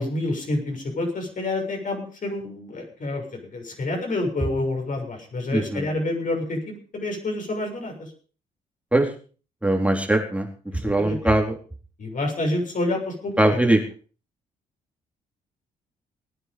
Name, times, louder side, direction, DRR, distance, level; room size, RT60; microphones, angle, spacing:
voice 1, 0.0-8.1 10.7-11.2 12.0-13.7, left 2 dB, 50° left, 2 dB, 6.8 m, -28 dB
voice 2, 5.5-5.8 8.9-9.0 9.6-10.4 10.8-11.5 13.4-13.8, right 1 dB, 10° right, 1 dB, 4.0 m, -20 dB
20.0 x 9.7 x 5.4 m, 0.40 s
hypercardioid pair, 50°, 17 cm